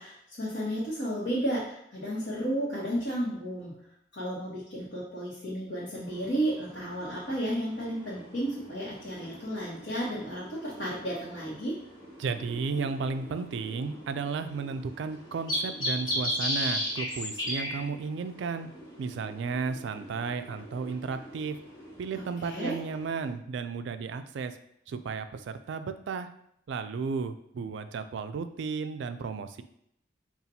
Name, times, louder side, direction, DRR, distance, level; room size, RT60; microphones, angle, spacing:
voice 1, 0.0-3.7 4.1-11.8 22.1-22.8, right 1 dB, 60° left, -10 dB, 1.1 m, -33 dB
sound 1, 6.0-23.3, left 1 dB, 20° left, 1.5 m, -38 dB
voice 2, 12.2-18.7 19.0-21.6 22.0-24.5 24.9-26.3 26.7-29.6, right 5 dB, 65° right, 10 dB, 0.3 m, -34 dB
5.4 x 2.4 x 2.7 m, 0.73 s
head